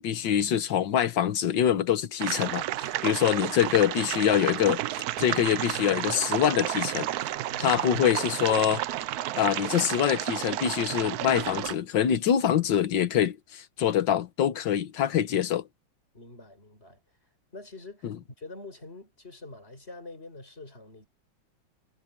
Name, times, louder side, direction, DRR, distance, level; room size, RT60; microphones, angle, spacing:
voice 1, 0.0-7.1 7.6-8.8 9.4-15.7 18.0-18.1, left 9 dB, 70° left, 1.8 m, -25 dB
sound 1, 2.2-11.7, right 14 dB, 70° right, 0.9 m, -31 dB
voice 2, 7.4-7.8 16.1-17.0 17.5-18.1 18.4-21.1, left 2 dB, 30° left, 5.7 m, -45 dB
omnidirectional pair, 2.1 m